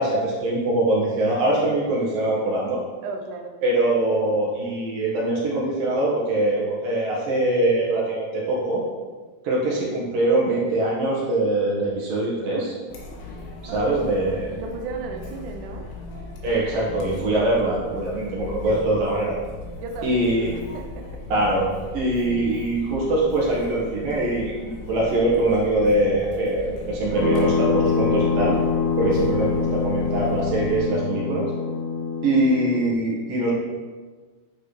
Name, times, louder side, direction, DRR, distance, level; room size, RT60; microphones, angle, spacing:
voice 1, 0.0-2.8 3.6-8.8 9.4-12.7 13.7-14.5 16.4-19.3 20.0-20.5 21.3-21.6 21.9-24.6 24.9-28.6 29.0-31.5 32.2-33.5, right 1 dB, 65° right, -4 dB, 2.9 m, -23 dB
voice 2, 3.0-3.6 13.7-15.9 18.6-19.0 19.8-20.4 20.7-21.1, right 3 dB, 85° right, 3 dB, 1.7 m, -35 dB
Chatter, 12.9-30.8, left 2 dB, 90° left, 3.5 m, -38 dB
sound 1, 27.1-32.9, left 5 dB, 60° left, 4.4 m, -24 dB
10.5 x 7.1 x 3.2 m, 1.4 s
omnidirectional pair, 4.6 m